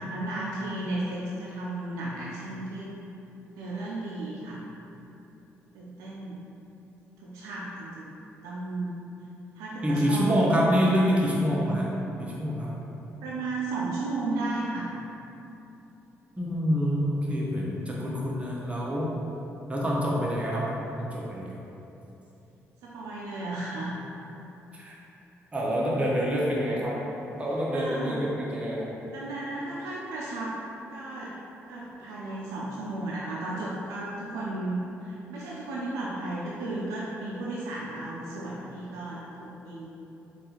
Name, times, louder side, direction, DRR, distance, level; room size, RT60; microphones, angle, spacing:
voice 1, 0.0-2.9 3.6-4.6 5.7-6.4 7.2-8.1 8.4-8.9 9.6-10.3 10.6-11.0 13.2-14.9 22.8-23.9 27.7-28.3 29.1-30.5 30.9-31.3 31.7-39.9, right 2 dB, 85° right, -6 dB, 0.4 m, -34 dB
voice 2, 9.8-11.9 12.2-12.8 16.4-19.1 19.7-20.6 21.0-21.6 24.7-25.0 25.5-27.0 27.4-28.9, equal, 25° right, -5 dB, 0.8 m, -26 dB
3.4 x 2.4 x 2.9 m, 3.0 s
supercardioid pair, 60°, 6 cm